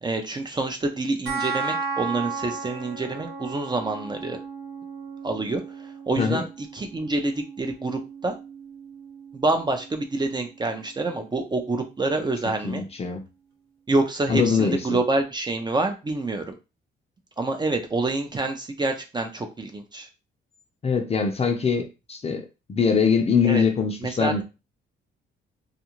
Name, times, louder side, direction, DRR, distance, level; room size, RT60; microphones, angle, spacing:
voice 1, 0.0-4.4 5.2-8.3 9.3-12.8 13.9-16.6 17.4-20.1 23.4-23.6 24.0-24.4, right 2 dB, 20° right, 0.5 m, -27 dB
sound 1, 1.3-12.2, right 5 dB, 75° right, 1.1 m, -36 dB
voice 2, 12.6-13.2 14.3-14.8 20.8-24.4, left 6 dB, 30° left, 0.5 m, -23 dB
2.4 x 2.3 x 2.9 m
cardioid pair, 90°, 20 cm